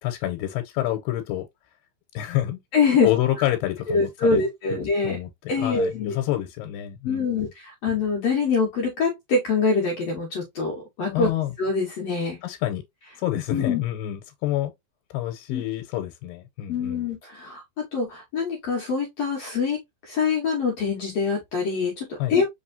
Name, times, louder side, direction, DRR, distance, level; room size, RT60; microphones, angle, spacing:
voice 1, 0.0-1.5 2.1-2.6 3.0-4.4 5.0-7.5 11.1-11.5 12.4-12.8 13.2-14.7 15.1-17.1 22.2-22.4, left 13 dB, 85° left, 2.4 m, -28 dB
voice 2, 2.7-3.1 3.9-5.2 5.5-6.1 7.0-11.3 11.6-12.4 13.5-13.8 15.5-15.6 16.7-22.4, left 4 dB, 65° left, 1.9 m, -24 dB
5.1 x 3.0 x 2.6 m
omnidirectional pair, 4.0 m